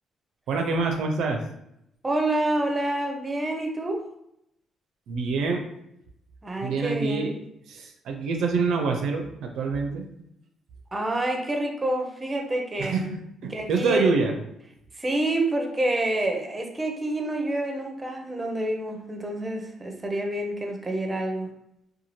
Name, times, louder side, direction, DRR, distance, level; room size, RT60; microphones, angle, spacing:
voice 1, 0.5-1.4 5.1-5.7 6.6-7.3 7.7-10.1 12.8-14.3, right 4 dB, 75° right, 4 dB, 0.4 m, -26 dB
voice 2, 2.0-4.0 6.4-7.3 10.9-13.1 13.5-14.1 14.9-21.5, right 1 dB, 20° right, 3 dB, 0.6 m, -28 dB
2.7 x 2.2 x 3.0 m, 0.78 s
cardioid pair, 90°, 0 cm